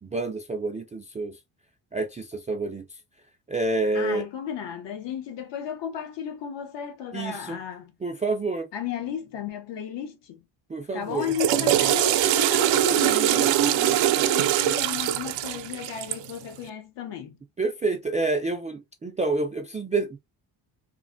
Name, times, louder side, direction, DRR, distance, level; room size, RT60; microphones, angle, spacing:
voice 1, 0.0-1.4 1.9-2.8 3.5-4.2 7.1-7.6 8.0-8.7 10.7-11.3 17.6-20.2, right 3 dB, 20° right, 0.3 m, -28 dB
voice 2, 3.9-7.9 8.7-10.4 10.9-17.4, left 8 dB, 60° left, 0.9 m, -34 dB
Water / Toilet flush, 11.1-16.4, right 13 dB, 75° right, 0.5 m, -22 dB
3.1 x 2.1 x 2.5 m
cardioid pair, 95°, 47 cm